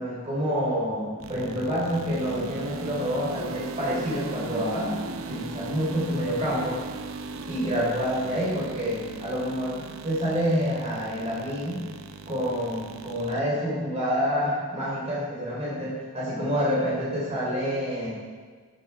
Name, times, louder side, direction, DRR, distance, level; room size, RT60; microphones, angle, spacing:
voice 1, 0.0-5.0 5.3-6.8 7.5-11.8 12.3-18.1, equal, 30° right, -6 dB, 3.5 m, -28 dB
sound 1, 1.2-13.4, right 3 dB, 75° right, 0.7 m, -38 dB
13.5 x 7.9 x 4.4 m, 1.5 s
head